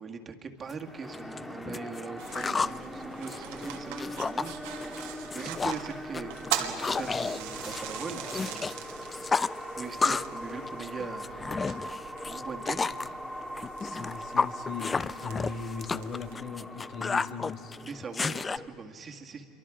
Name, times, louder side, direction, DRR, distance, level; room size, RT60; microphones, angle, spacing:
voice 1, 0.0-4.9 5.2-6.3 6.6-8.8 9.8-11.4 12.2-12.9 17.8-19.5, right 5 dB, 30° right, 4 dB, 2.0 m, -41 dB
sound 1, 0.7-0.8 1.1-2.8 3.1-4.5 4.8-5.1 5.3-5.9 6.1-8.7 9.0-10.4 10.7-13.1 13.6-18.6, left 4 dB, 20° left, 0.4 m, -31 dB
sound 2, 0.8-18.7, equal, 5° left, 1.8 m, -41 dB
sound 3, 2.2-16.3, right 11 dB, 70° right, 1.7 m, -42 dB
voice 2, 13.8-17.7, left 5 dB, 45° left, 6 dB, 1.8 m, -39 dB
27.0 x 23.5 x 5.0 m, 2.8 s
hypercardioid pair, 85°, 0 cm